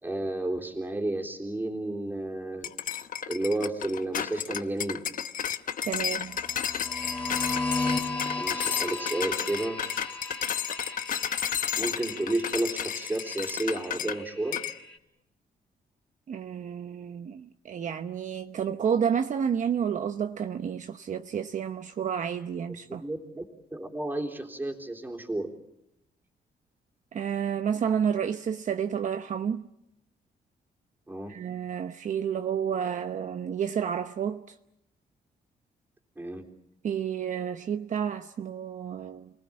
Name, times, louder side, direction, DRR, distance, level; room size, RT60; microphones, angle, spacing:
voice 1, 0.0-2.7 3.3-5.0 8.4-9.8 11.8-14.6 22.7-23.4 23.7-25.5 31.1-31.3 36.2-36.4, right 2 dB, 10° right, 3.6 m, -32 dB
sound 1, 2.6-14.2 14.5-14.8, left 8 dB, 60° left, 1.0 m, -32 dB
voice 2, 5.8-6.4 16.3-23.0 27.1-29.7 31.3-34.4 36.8-39.3, right 8 dB, 50° right, 0.9 m, -30 dB
sound 2, 6.2-15.0, left 3 dB, 10° left, 4.2 m, -36 dB
29.5 x 19.5 x 8.7 m
cardioid pair, 135°, 16 cm